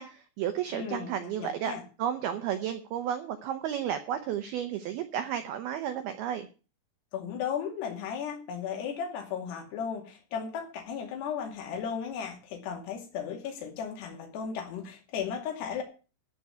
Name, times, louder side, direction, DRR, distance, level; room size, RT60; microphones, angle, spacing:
voice 1, 0.0-1.7 2.0-6.5, right 10 dB, 85° right, 8 dB, 2.2 m, -32 dB
voice 2, 0.7-1.8 7.1-15.8, left 7 dB, 60° left, 2 dB, 4.4 m, -35 dB
14.0 x 4.9 x 9.1 m, 0.35 s
omnidirectional pair, 5.7 m